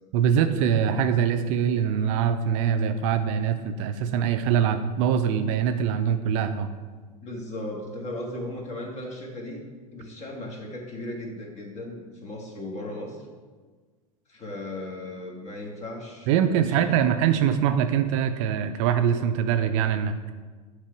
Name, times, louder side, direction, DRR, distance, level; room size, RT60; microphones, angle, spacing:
voice 1, 0.1-6.7 16.3-20.3, right 8 dB, 55° right, 8 dB, 0.5 m, -23 dB
voice 2, 7.2-9.6 9.9-13.3 14.3-16.3 16.5-17.1, left 1 dB, 35° left, 1 dB, 1.5 m, -36 dB
8.1 x 3.4 x 4.7 m, 1.4 s
figure-of-eight pair, 80°, 20 cm